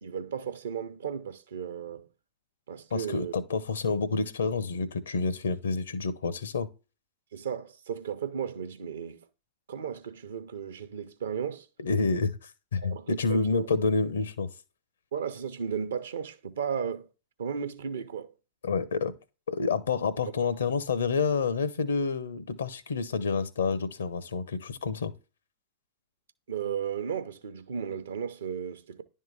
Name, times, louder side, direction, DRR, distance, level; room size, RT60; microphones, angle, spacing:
voice 1, 0.0-2.1 2.7-3.3 7.3-9.2 9.7-11.7 12.8-13.7 15.1-17.1 17.4-18.3 26.5-29.0, right 7 dB, 65° right, 0.7 m, -35 dB
voice 2, 2.9-6.7 11.8-14.5 18.6-19.1 19.5-25.1, left 4 dB, 70° left, 0.7 m, -28 dB
10.5 x 3.7 x 4.0 m
figure-of-eight pair, 90°, 0 cm